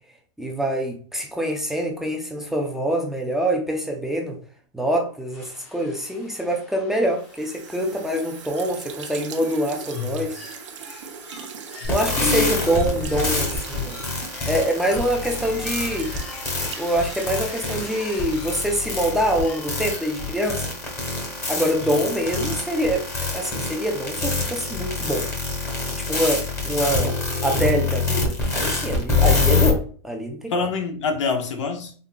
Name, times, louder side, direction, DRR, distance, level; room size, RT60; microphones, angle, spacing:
voice 1, 0.4-4.4 4.7-10.4 11.9-14.0 14.5-16.1 16.8-20.6 21.5-25.3 26.1-27.1 27.4-30.5, right 1 dB, ahead, 0.4 m, -25 dB
sound 1, 5.3-20.3, left 3 dB, 40° left, 1.1 m, -43 dB
sound 2, 7.2-18.6, right 7 dB, 80° right, 0.6 m, -40 dB
sound 3, 11.8-29.7, left 3 dB, 15° left, 1.0 m, -26 dB
voice 2, 30.5-31.9, left 5 dB, 80° left, 0.9 m, -26 dB
3.7 x 2.7 x 2.2 m
hypercardioid pair, 145°, 16 cm